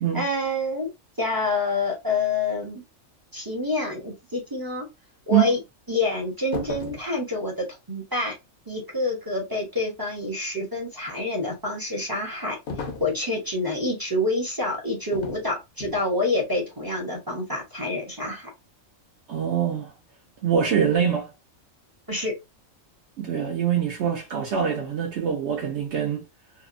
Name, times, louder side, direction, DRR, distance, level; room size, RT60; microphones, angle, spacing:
voice 1, 0.1-0.9 1.2-2.8 3.3-4.8 5.3-5.6 5.9-8.3 8.7-12.6 13.0-18.5 22.1-22.3, left 2 dB, 25° right, 0.5 m, -27 dB
sound 1, 6.5-7.1 12.7-13.2 15.1-15.4 15.8-16.1, left 3 dB, 55° left, 0.6 m, -34 dB
voice 2, 19.3-19.9 20.4-21.3 23.2-26.2, right 8 dB, 65° right, 0.8 m, -24 dB
2.7 x 2.1 x 2.4 m
omnidirectional pair, 1.4 m